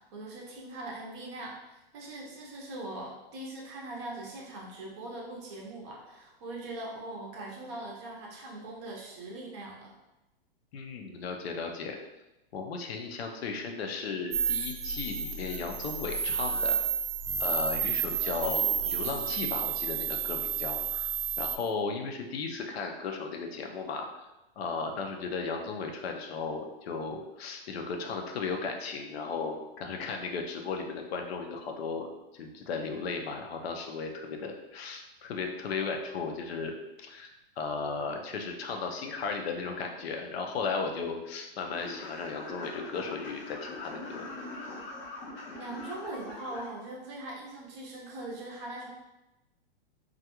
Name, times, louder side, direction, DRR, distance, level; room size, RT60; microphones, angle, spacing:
voice 1, 0.0-9.9 45.6-48.9, right 2 dB, 30° right, -2 dB, 0.5 m, -41 dB
voice 2, 10.7-12.0 12.5-16.8 17.4-21.1 21.4-24.3 24.6-32.1 32.3-44.3, left 4 dB, 90° left, 3 dB, 0.6 m, -35 dB
sound 1, 14.3-21.6, right 7 dB, 85° right, 0.5 m, -31 dB
sound 2, 41.7-46.7, left 2 dB, 30° left, 0.5 m, -42 dB
2.4 x 2.2 x 2.8 m, 0.98 s
supercardioid pair, 160°, 30 cm